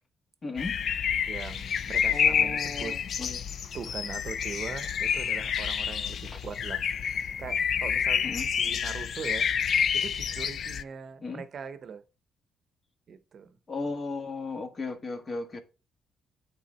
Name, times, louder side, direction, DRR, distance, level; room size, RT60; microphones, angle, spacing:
voice 1, 0.4-0.8 2.1-3.4 8.2-8.5 11.2-11.4 13.7-15.6, left 3 dB, 40° left, 1.4 m, -35 dB
sound 1, 0.6-10.8, left 7 dB, 60° left, 0.4 m, -28 dB
voice 2, 1.3-2.9 3.7-6.8 7.4-8.3 8.6-9.5 9.9-12.0 13.1-13.6, right 6 dB, 55° right, 0.8 m, -41 dB
8.6 x 3.7 x 4.2 m
cardioid pair, 90°, 0 cm